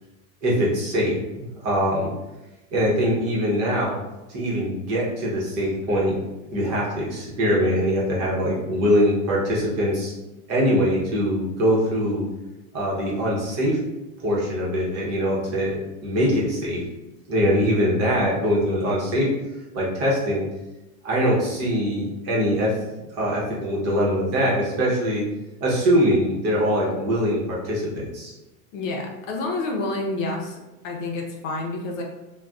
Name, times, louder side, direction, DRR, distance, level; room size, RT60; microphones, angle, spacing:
voice 1, 0.4-2.1 2.7-4.0 4.3-6.2 6.5-10.1 10.5-12.3 12.7-13.8 14.2-16.8 17.3-19.3 19.7-20.5 21.0-22.7 23.1-25.2 25.6-28.3, equal, 35° right, -4 dB, 0.9 m, -22 dB
voice 2, 28.7-30.6 30.8-32.0, left 2 dB, 60° left, 0 dB, 0.7 m, -28 dB
2.5 x 2.3 x 3.4 m, 1.0 s
supercardioid pair, 145°, 43 cm